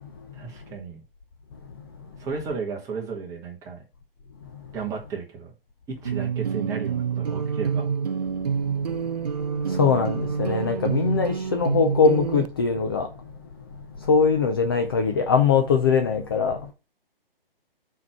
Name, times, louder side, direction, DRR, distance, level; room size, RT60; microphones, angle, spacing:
voice 1, 0.3-1.0 2.2-3.8 4.7-5.5 5.9-7.9, right 5 dB, 10° right, 1.5 m, -34 dB
sound 1, 6.0-12.5, right 6 dB, 45° right, 0.5 m, -27 dB
voice 2, 9.6-13.1 14.0-16.7, left 5 dB, 25° left, 0.6 m, -22 dB
5.8 x 4.7 x 5.8 m
figure-of-eight pair, 140°, 29 cm